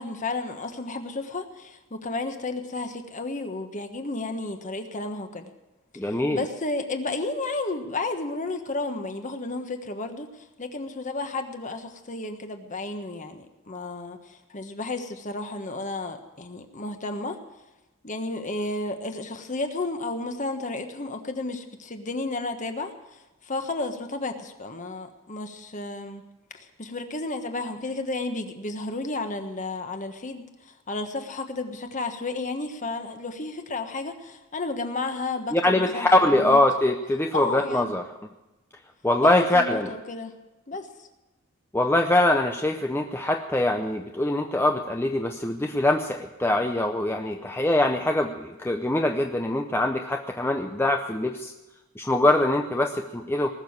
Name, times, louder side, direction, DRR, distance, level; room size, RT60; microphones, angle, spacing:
voice 1, 0.0-5.5 6.0-17.4 18.0-26.2 26.5-36.6 37.3-37.9 39.2-40.3 40.7-41.1, left 2 dB, 35° left, 6 dB, 1.3 m, -32 dB
voice 2, 6.0-6.4 35.5-38.1 39.0-39.9 41.7-51.5 52.0-53.5, left 1 dB, 10° left, 3 dB, 0.6 m, -23 dB
19.5 x 7.1 x 9.5 m, 1.0 s
head